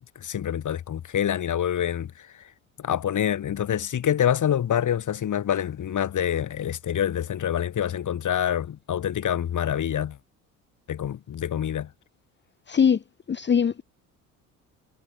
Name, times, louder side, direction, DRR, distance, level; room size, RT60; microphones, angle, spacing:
voice 1, 0.2-2.4 2.8-10.2 10.9-11.9, left 10 dB, 40° left, 3.9 m, -26 dB
voice 2, 12.7-13.0 13.3-13.8, left 7 dB, 25° left, 1.2 m, -21 dB
figure-of-eight pair, 60°, 44 cm